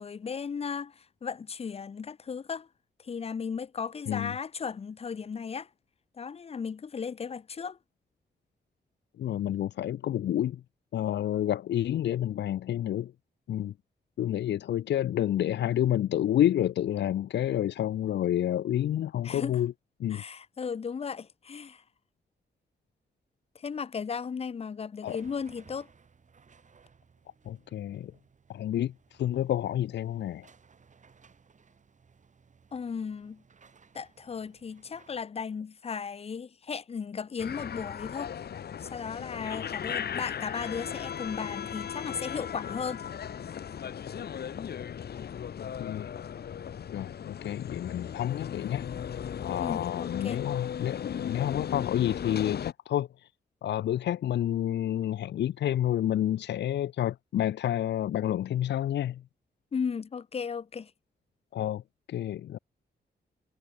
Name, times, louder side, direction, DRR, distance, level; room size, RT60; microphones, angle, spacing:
voice 1, 0.0-2.7 3.0-5.7 6.1-7.8 19.2-19.6 20.1-21.8 23.5-25.9 32.7-33.4 33.9-38.3 38.8-43.0 49.6-50.4 59.7-60.9, left 6 dB, 35° left, 0.6 m, -36 dB
voice 2, 9.2-10.6 10.9-13.1 13.5-13.7 14.2-19.7 20.0-20.2 25.0-25.2 27.5-28.1 28.5-28.9 29.2-30.5 45.8-46.1 46.9-48.9 49.4-53.1 53.6-59.2 61.5-61.8 62.1-62.6, left 11 dB, 80° left, 0.5 m, -29 dB
sound 1, 25.1-35.2, right 5 dB, 45° right, 5.4 m, -60 dB
sound 2, 37.4-52.7, left 8 dB, 65° left, 1.3 m, -37 dB
wide cardioid pair, 145°, 18 cm